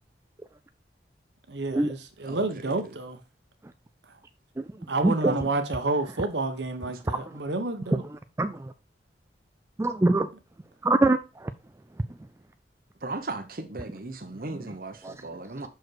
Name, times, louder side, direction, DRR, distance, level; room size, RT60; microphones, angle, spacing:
voice 1, 1.5-3.2 4.9-8.0, right 2 dB, 75° right, 1.1 m, -29 dB
voice 2, 2.2-3.0 6.9-7.0 13.0-15.7, right 2 dB, 50° right, 1.0 m, -37 dB
voice 3, 5.0-5.4 7.1-7.4 8.1-8.7 9.8-10.3 10.8-11.5 14.5-14.6 15.0-15.1, right 2 dB, 15° right, 0.3 m, -24 dB
6.2 x 4.9 x 4.6 m
head